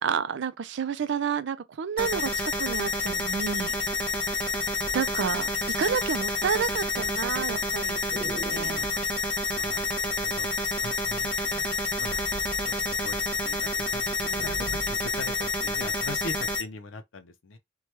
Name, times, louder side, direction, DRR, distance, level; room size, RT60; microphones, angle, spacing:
voice 1, 0.0-3.8 4.9-5.5 5.8-8.9, right 7 dB, 65° right, 0.4 m, -30 dB
sound 1, 2.0-16.6, left 3 dB, 5° left, 0.7 m, -29 dB
sound 2, 2.7-4.2 4.8-5.1 5.4-5.9 6.2-9.1 10.2-10.7 11.0-13.3 13.6-13.7 14.0-15.2 15.8-15.9, equal, 45° right, 1.3 m, -42 dB
voice 2, 9.3-10.5 10.8-11.7 12.0-12.3 12.6-17.6, left 3 dB, 85° left, 0.5 m, -41 dB
2.9 x 2.2 x 3.1 m
head